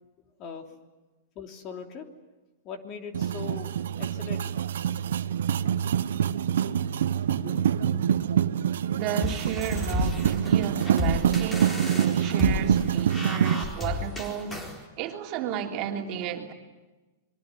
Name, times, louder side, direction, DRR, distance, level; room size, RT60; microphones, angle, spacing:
voice 1, 0.4-0.8 1.3-2.1 2.6-4.6 7.3-8.2, left 5 dB, 35° left, 3.1 m, -40 dB
sound 1, 3.1-13.6, right 9 dB, 80° right, 1.1 m, -26 dB
voice 2, 8.9-14.6 15.0-16.5, right 8 dB, 35° right, 3.3 m, -33 dB
sound 2, 9.2-14.8, left 3 dB, 10° left, 4.0 m, -32 dB
26.0 x 22.5 x 9.5 m
hypercardioid pair, 145°, 0 cm